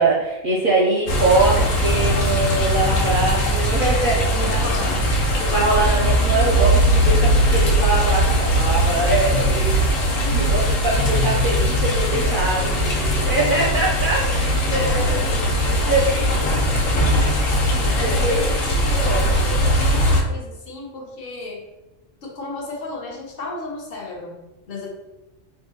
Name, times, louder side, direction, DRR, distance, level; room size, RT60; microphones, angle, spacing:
voice 1, 0.0-4.6 5.4-15.3 15.9-16.3 17.7-18.4 18.9-19.4, right 2 dB, 60° right, -4 dB, 0.6 m, -23 dB
sound 1, 1.1-20.2, equal, 90° left, 1.0 m, -20 dB
voice 2, 4.3-5.7 10.1-11.1 14.2-14.5 14.8-17.3 17.6-21.6 22.2-24.4 24.7-24.9, left 3 dB, 60° left, 0 dB, 0.7 m, -34 dB
3.6 x 2.6 x 2.7 m, 1.0 s
omnidirectional pair, 1.3 m